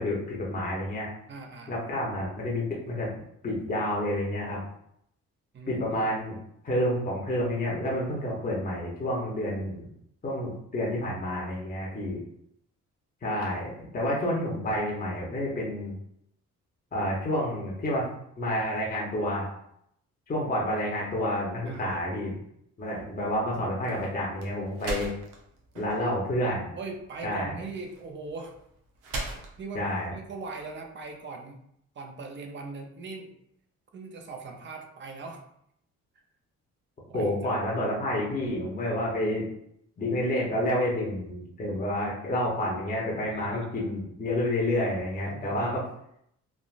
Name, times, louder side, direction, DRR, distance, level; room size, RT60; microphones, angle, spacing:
voice 1, 0.0-1.1 1.7-3.1 3.4-4.6 5.7-6.4 6.6-9.9 10.2-12.2 13.2-15.9 16.9-18.1 18.4-19.5 20.3-22.4 22.8-25.1 25.7-26.7 27.2-27.5 29.7-30.1 37.1-39.5 40.0-45.8, left 1 dB, 30° left, -4 dB, 0.9 m, -29 dB
voice 2, 1.3-1.8 5.5-6.0 20.3-20.6 21.6-22.0 26.8-28.5 29.6-29.8 30.1-31.6 31.9-33.4 33.9-35.4 37.1-37.5 43.3-43.9 45.3-45.8, right 3 dB, 40° right, 3 dB, 0.6 m, -40 dB
sound 1, 23.0-31.2, right 2 dB, 90° right, 0.7 m, -41 dB
3.4 x 2.4 x 2.4 m, 0.73 s
cardioid pair, 90°, 30 cm